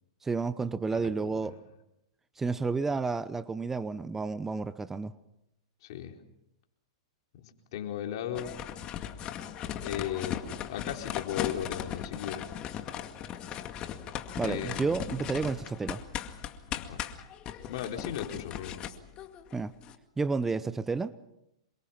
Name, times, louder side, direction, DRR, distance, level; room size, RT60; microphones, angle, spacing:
voice 1, 0.2-1.6 2.4-5.1 14.4-16.0 19.5-19.7 20.2-21.1, right 4 dB, 10° right, 14 dB, 0.8 m, -31 dB
voice 2, 5.8-6.2 7.3-8.5 9.8-12.5 14.4-14.9 16.7-17.0 17.6-18.8, left 10 dB, 60° left, 2 dB, 4.4 m, -36 dB
sound 1, 8.3-19.9, left 10 dB, 30° left, 2.1 m, -38 dB
27.5 x 24.0 x 5.9 m, 0.84 s
hypercardioid pair, 125°, 3 cm